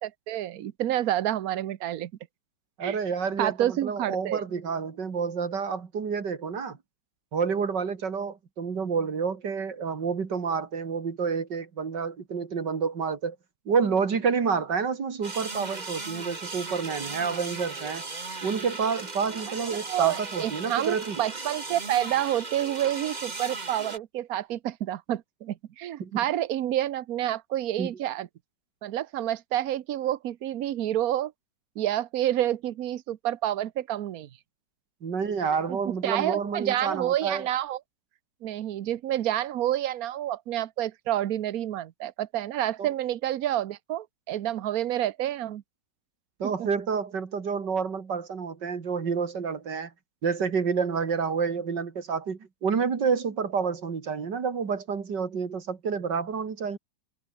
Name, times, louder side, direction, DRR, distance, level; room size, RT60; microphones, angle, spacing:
voice 1, 0.0-2.1 2.8-3.0 3.4-4.4 19.9-28.3 28.8-31.3 31.8-34.3 35.7-37.8 38.4-45.6 46.4-46.7, right 12 dB, 60° right, 1.2 m, -29 dB
voice 2, 2.8-6.8 7.3-13.4 13.7-18.0 18.4-21.2 26.0-26.1 27.8-27.9 35.0-37.5 42.8-42.9 46.4-49.9 50.2-56.8, right 6 dB, 85° right, 2.9 m, -29 dB
sound 1, 15.2-24.0, right 3 dB, 25° right, 1.7 m, -37 dB
omnidirectional pair, 1.8 m